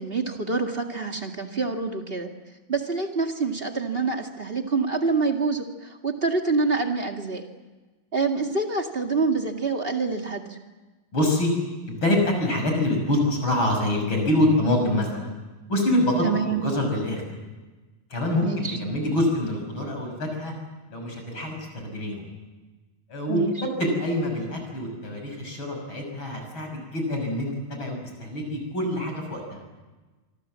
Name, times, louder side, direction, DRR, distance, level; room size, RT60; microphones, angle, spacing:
voice 1, 0.0-2.3 2.7-7.4 8.1-10.6 16.2-16.6 18.4-18.8 23.3-23.5, right 4 dB, 25° right, 4 dB, 1.6 m, -26 dB
voice 2, 11.1-11.5 11.9-15.3 15.7-17.4 18.1-20.5 20.9-22.3 23.1-23.4 23.8-29.6, left 1 dB, 35° left, 3 dB, 6.8 m, -25 dB
26.0 x 24.5 x 7.6 m, 1.2 s
omnidirectional pair, 3.7 m